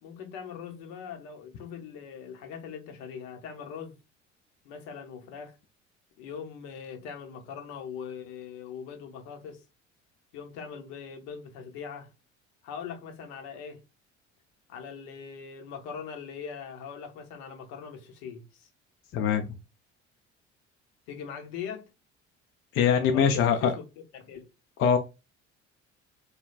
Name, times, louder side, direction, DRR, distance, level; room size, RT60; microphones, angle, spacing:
voice 1, 0.0-4.0 4.6-5.6 6.2-9.6 10.3-12.1 12.6-13.8 14.7-18.7 21.1-21.9 23.1-23.8 24.1-24.5, left 7 dB, 60° left, 0.8 m, -41 dB
voice 2, 19.1-19.5 22.7-23.7 24.8-25.0, left 7 dB, 40° left, 0.4 m, -22 dB
3.3 x 2.2 x 2.3 m
figure-of-eight pair, 55°, 36 cm